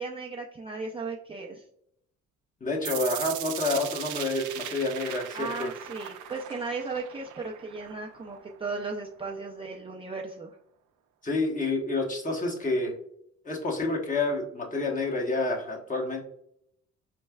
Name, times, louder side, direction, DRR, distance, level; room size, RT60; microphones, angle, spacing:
voice 1, 0.0-1.6 5.3-10.6, right 3 dB, 20° right, -1 dB, 0.4 m, -36 dB
voice 2, 2.6-5.7 11.2-12.9 13.4-16.2, left 2 dB, 25° left, 0 dB, 1.0 m, -28 dB
sound 1, 2.8-8.8, right 11 dB, 80° right, 0.5 m, -38 dB
4.3 x 3.2 x 2.2 m, 0.72 s
cardioid pair, 90°, 30 cm